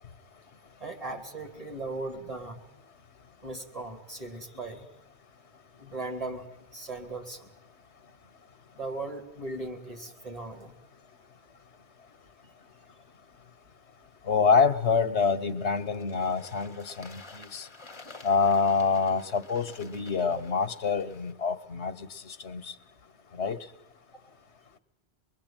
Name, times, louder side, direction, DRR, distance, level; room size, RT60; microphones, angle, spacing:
voice 1, 0.8-2.6 3.4-4.9 5.8-6.5 6.7-7.5 8.7-10.7, right 2 dB, 35° right, 4 dB, 3.3 m, -38 dB
voice 2, 14.2-17.7 18.2-22.7 23.3-23.6, left 5 dB, 85° left, 13 dB, 1.5 m, -26 dB
Bird / Water, 14.6-21.3, left 3 dB, 25° left, 1.1 m, -51 dB
24.5 x 22.5 x 9.1 m, 0.76 s
omnidirectional pair, 1.1 m